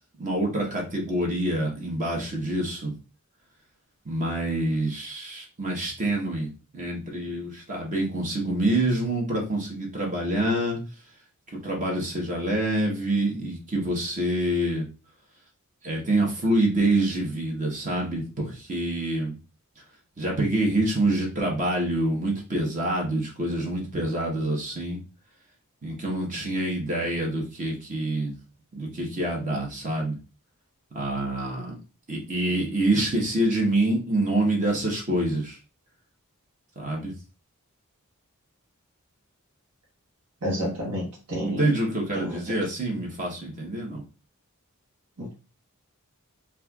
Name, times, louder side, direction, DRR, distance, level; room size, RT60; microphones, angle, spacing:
voice 1, 0.2-2.9 4.0-10.8 11.6-14.8 15.8-19.3 20.2-25.0 25.8-28.3 28.7-30.2 30.9-31.7 32.1-35.6 36.8-37.1 41.4-44.0, right 1 dB, 35° right, -1 dB, 0.9 m, -26 dB
voice 2, 40.4-41.7 42.1-42.6 45.2-45.3, equal, 85° right, -4 dB, 1.0 m, -31 dB
4.2 x 2.4 x 2.3 m, 0.32 s
head